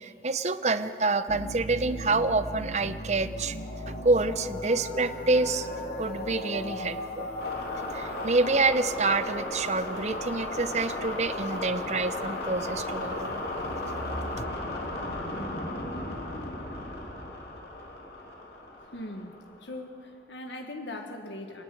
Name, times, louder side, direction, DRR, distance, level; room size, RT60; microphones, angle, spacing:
voice 1, 0.0-3.6 3.9-5.7 6.0-7.3 7.9-13.3, right 3 dB, 40° right, 11 dB, 0.7 m, -27 dB
sound 1, 1.3-19.7, left 1 dB, 60° left, 3.3 m, -35 dB
voice 2, 18.9-19.3 19.6-21.6, left 1 dB, 85° left, 4 dB, 1.6 m, -39 dB
27.0 x 10.5 x 9.2 m, 2.5 s
head